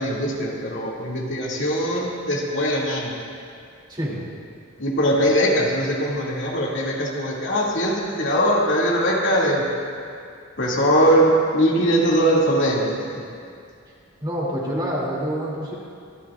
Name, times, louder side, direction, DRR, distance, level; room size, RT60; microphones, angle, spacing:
voice 1, 0.0-3.2 4.8-9.7 10.6-13.2, equal, 65° left, -4 dB, 2.5 m, -21 dB
voice 2, 14.2-15.7, equal, 20° right, -5 dB, 2.9 m, -26 dB
26.0 x 13.5 x 2.5 m, 2.3 s
head